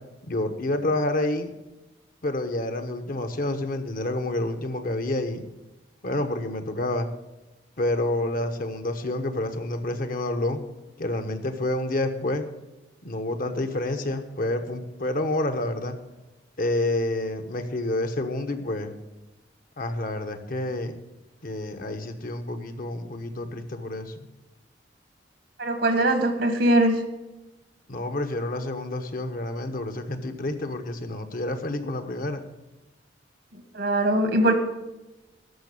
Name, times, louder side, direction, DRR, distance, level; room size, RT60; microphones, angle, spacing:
voice 1, 0.2-1.5 2.2-5.4 6.0-7.1 7.8-10.6 11.0-12.5 13.0-16.0 16.6-18.9 19.8-21.0 21.4-24.3 27.9-32.4, left 1 dB, 50° left, 8 dB, 1.2 m, -28 dB
voice 2, 25.6-27.0 33.5-34.5, right 1 dB, 70° right, 7 dB, 1.5 m, -21 dB
13.0 x 5.9 x 8.6 m, 1.0 s
head